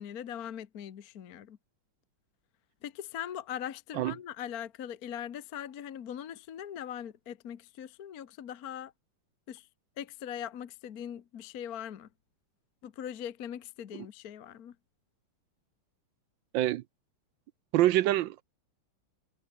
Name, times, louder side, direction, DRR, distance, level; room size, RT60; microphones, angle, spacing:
voice 1, 0.0-1.6 2.8-8.9 9.5-9.7 10.0-12.1 12.8-14.7, left 9 dB, 50° left, 1.4 m, -41 dB
voice 2, 17.7-18.4, right 14 dB, 70° right, 1.2 m, -25 dB
omnidirectional pair, 2.4 m